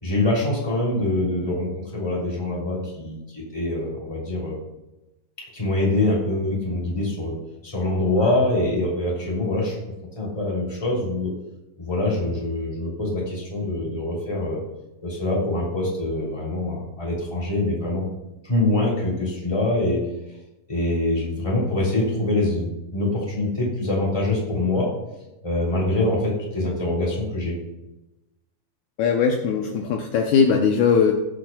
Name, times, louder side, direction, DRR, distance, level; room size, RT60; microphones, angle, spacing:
voice 1, 0.0-4.6 5.5-7.3 7.6-9.8 10.2-11.3 11.8-14.6 15.0-18.1 18.4-20.0 20.7-24.9 25.4-27.6, left 2 dB, 10° left, -4 dB, 2.5 m, -24 dB
voice 2, 29.0-31.1, left 6 dB, 85° left, 2 dB, 1.7 m, -19 dB
17.5 x 7.4 x 2.3 m, 0.99 s
omnidirectional pair, 4.5 m